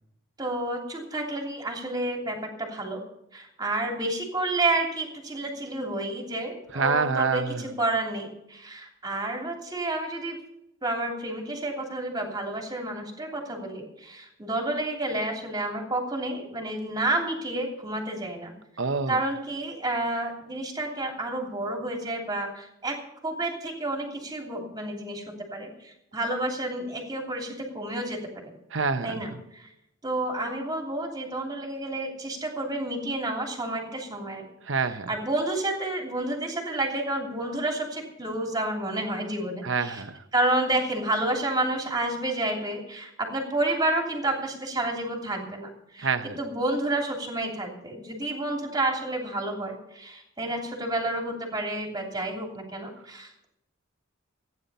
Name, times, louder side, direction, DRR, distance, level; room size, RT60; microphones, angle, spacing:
voice 1, 0.4-3.0 3.3-10.4 10.8-18.5 19.1-25.2 25.5-28.4 29.0-29.7 30.0-34.5 35.1-40.0 40.3-46.1 46.4-53.5, right 2 dB, 20° right, 1 dB, 2.9 m, -30 dB
voice 2, 6.7-7.7 18.8-19.2 28.7-29.4 34.6-35.1 39.6-40.2 46.0-46.4, right 4 dB, 65° right, 9 dB, 0.9 m, -27 dB
15.5 x 9.8 x 5.5 m, 0.80 s
head